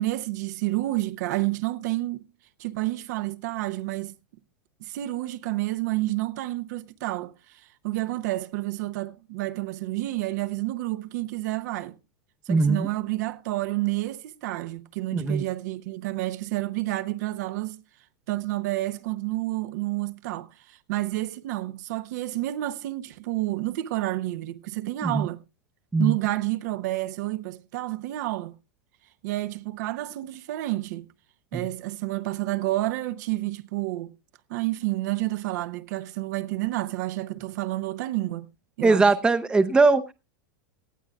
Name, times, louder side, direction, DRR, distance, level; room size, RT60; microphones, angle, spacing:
voice 1, 0.0-2.3 2.6-4.1 4.8-7.3 7.8-12.0 12.5-17.8 18.3-25.4 26.0-28.5 29.2-31.1 31.5-34.1 34.5-38.5 38.8-39.1, right 17 dB, 60° right, 0.7 m, -29 dB
voice 2, 12.5-12.9 15.1-15.4 25.0-25.3 25.9-26.1 31.5-31.6 38.8-40.1, right 3 dB, 10° right, 0.6 m, -21 dB
18.5 x 12.5 x 2.3 m
supercardioid pair, 140°, 10 cm